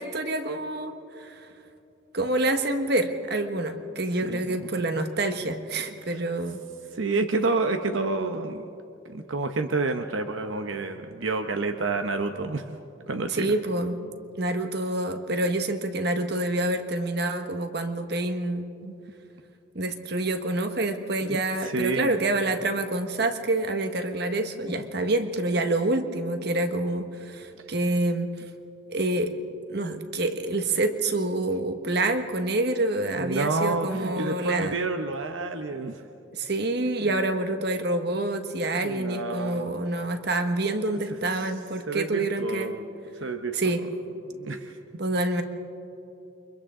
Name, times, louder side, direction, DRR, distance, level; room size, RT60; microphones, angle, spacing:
voice 1, 0.0-1.4 2.1-6.6 13.3-14.0 14.4-18.7 19.7-28.3 28.9-29.3 29.7-34.8 36.3-42.7 43.5-43.9 45.0-45.4, right 2 dB, 55° right, 7 dB, 1.4 m, -27 dB
voice 2, 4.2-4.8 6.1-6.2 6.9-8.6 9.0-12.8 13.1-13.5 18.8-19.0 21.2-22.2 24.8-24.9 33.2-36.0 37.0-37.1 38.6-39.7 41.4-41.5 41.9-42.9 43.2-43.8 44.2-44.7, right 3 dB, 85° right, 6 dB, 0.9 m, -29 dB
29.0 x 24.5 x 3.8 m, 2.8 s
head